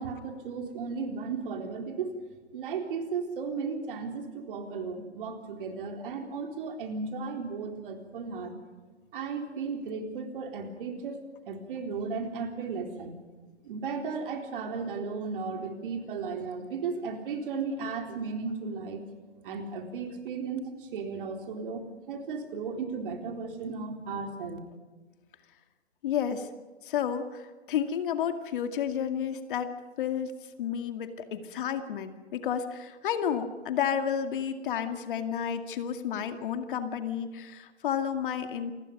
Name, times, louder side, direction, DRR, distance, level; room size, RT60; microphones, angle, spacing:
voice 1, 0.0-2.2 2.5-8.5 9.1-11.2 11.4-13.1 13.6-19.1 19.4-24.6, right 5 dB, 50° right, 4 dB, 4.0 m, -35 dB
voice 2, 26.0-26.5 26.8-38.7, left 8 dB, 50° left, 7 dB, 2.2 m, -31 dB
28.0 x 20.0 x 5.3 m, 1.4 s
hypercardioid pair, 130°, 34 cm